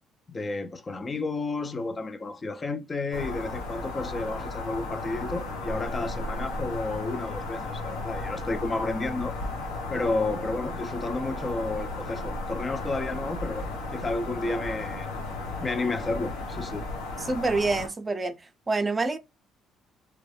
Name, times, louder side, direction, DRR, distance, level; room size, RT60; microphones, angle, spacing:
voice 1, 0.3-9.4 9.9-15.1 15.6-16.9, left 3 dB, 35° left, 0.4 m, -31 dB
sound 1, 3.1-17.9, left 2 dB, 85° left, 0.7 m, -34 dB
voice 2, 17.3-18.4 18.7-19.2, right 3 dB, 30° right, 0.5 m, -26 dB
2.3 x 2.1 x 3.0 m
hypercardioid pair, 55°, 0 cm